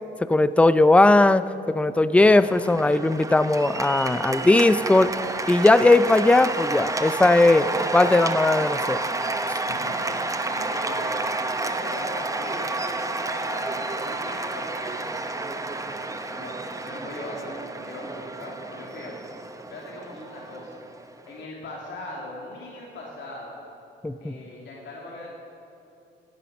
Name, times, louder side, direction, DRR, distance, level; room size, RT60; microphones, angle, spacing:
voice 1, 0.2-5.1 5.5-9.0 24.0-24.4, left 2 dB, 5° left, 14 dB, 0.4 m, -18 dB
Cheering / Applause, 2.2-21.4, right 2 dB, 15° right, 0.8 m, -30 dB
voice 2, 9.6-10.2 10.5-11.3 11.6-16.5 16.9-19.2 19.7-20.8 21.3-23.6 24.2-25.3, left 2 dB, 70° left, -3 dB, 2.5 m, -39 dB
16.0 x 10.0 x 5.3 m, 2.8 s
cardioid pair, 90°, 20 cm